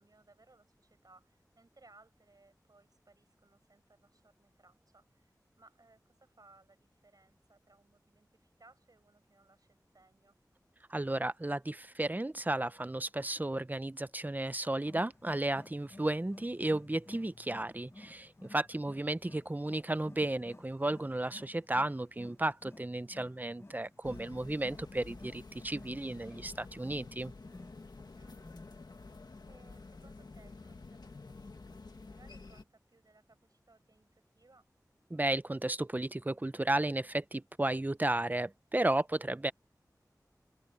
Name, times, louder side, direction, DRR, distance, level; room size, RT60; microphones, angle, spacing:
voice 1, 0.0-10.4 18.7-19.0 28.1-28.4 29.5-34.7, right 3 dB, 65° right, 6.5 m, -64 dB
voice 2, 10.9-27.3 35.1-39.5, right 1 dB, 25° right, 0.8 m, -33 dB
Wild animals, 14.7-29.0, left 2 dB, 40° left, 1.4 m, -56 dB
sound 1, 24.0-32.6, left 3 dB, 80° left, 1.8 m, -50 dB
open air
wide cardioid pair, 50°, 7 cm